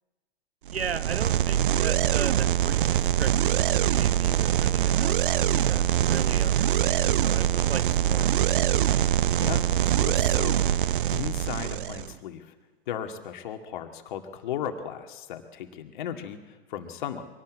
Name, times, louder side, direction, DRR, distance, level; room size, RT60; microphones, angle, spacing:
sound 1, 0.7-12.1, right 11 dB, 55° right, 0.7 m, -24 dB
voice 1, 0.7-8.8, right 6 dB, 75° right, 11 dB, 1.4 m, -37 dB
voice 2, 9.4-12.5 12.9-17.2, left 9 dB, 50° left, 6 dB, 2.2 m, -36 dB
24.0 x 18.0 x 8.4 m, 1.3 s
figure-of-eight pair, 100°, 31 cm